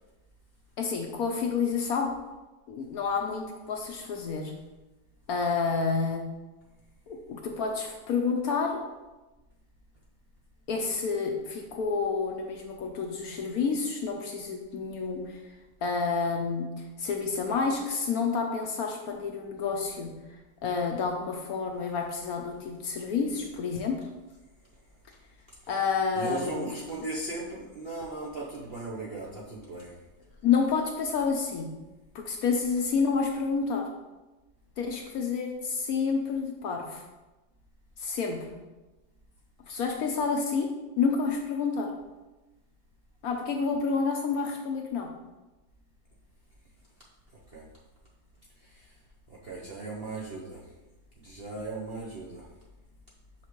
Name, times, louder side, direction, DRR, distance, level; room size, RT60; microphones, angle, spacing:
voice 1, 0.8-2.1 2.7-4.5 5.3-6.2 7.1-8.8 10.7-15.4 15.8-20.1 20.6-24.1 25.7-26.7 30.4-31.7 32.1-33.9 34.8-37.1 38.0-38.6 39.7-40.7 41.0-41.9 43.2-45.1, left 5 dB, 65° left, 2 dB, 1.0 m, -29 dB
voice 2, 26.1-29.9 47.5-47.6 48.6-48.9 49.4-50.6 51.2-52.4, right 2 dB, 50° right, -4 dB, 0.7 m, -37 dB
5.7 x 5.7 x 3.1 m, 1.1 s
omnidirectional pair, 1.9 m